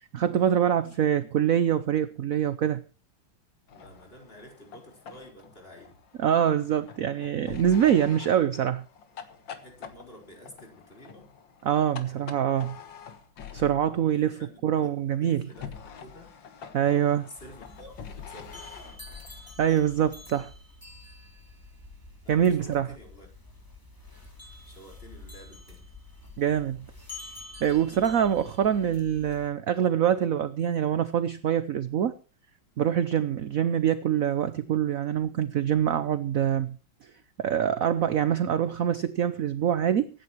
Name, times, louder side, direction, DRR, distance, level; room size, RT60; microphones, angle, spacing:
voice 1, 0.1-2.8 6.2-8.8 11.6-12.8 13.5-15.5 16.7-17.3 19.6-20.5 22.3-22.9 26.4-26.8 27.6-32.1 32.8-36.8 37.0-37.1 37.4-40.1, right 9 dB, 60° right, 0.9 m, -25 dB
sound 1, 3.7-14.0 15.5-19.5, left 7 dB, 65° left, 2.2 m, -46 dB
voice 2, 3.7-6.0 9.6-11.3 14.0-16.3 17.3-18.8 22.2-23.3 24.7-25.8, equal, 25° left, 4.8 m, -50 dB
sound 2, 17.4-29.5, left 2 dB, 10° left, 2.8 m, -47 dB
24.5 x 10.5 x 3.0 m
omnidirectional pair, 2.3 m